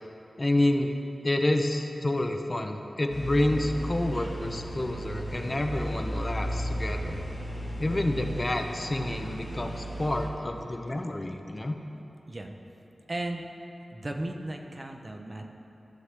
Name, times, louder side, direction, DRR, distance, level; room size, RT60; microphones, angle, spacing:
voice 1, 0.4-0.9 1.2-7.2 7.8-11.8, left 1 dB, 25° left, 4 dB, 0.5 m, -28 dB
sound 1, 3.1-10.3, equal, 55° left, 1.3 m, -35 dB
voice 2, 13.1-13.5 13.9-15.5, right 1 dB, 30° right, 3 dB, 0.6 m, -35 dB
14.0 x 6.5 x 3.3 m, 2.9 s
wide cardioid pair, 115°, 0 cm